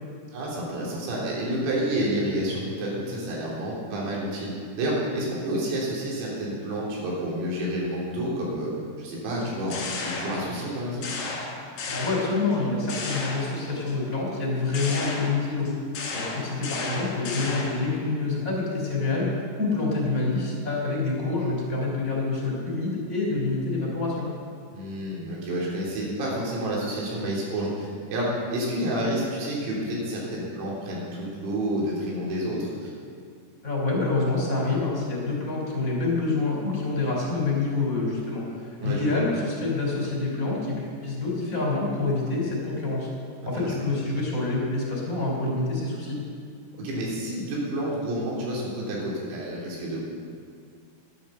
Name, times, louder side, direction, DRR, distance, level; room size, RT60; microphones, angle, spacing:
voice 1, 0.3-4.5 4.8-8.7 9.0-11.1 24.7-28.3 28.5-32.9 38.8-39.2 43.6-43.7 46.8-50.0, right 1 dB, 85° right, -5 dB, 5.9 m, -29 dB
sound 1, 9.4-10.7 11.0-12.6 12.9-13.9 14.7-17.9, left 3 dB, 55° left, 3.1 m, -34 dB
voice 2, 11.9-15.7 16.1-19.3 19.6-24.3 33.6-43.1 43.5-46.2, left 3 dB, 20° left, -3 dB, 3.0 m, -27 dB
13.5 x 10.5 x 6.7 m, 2.2 s
omnidirectional pair, 5.9 m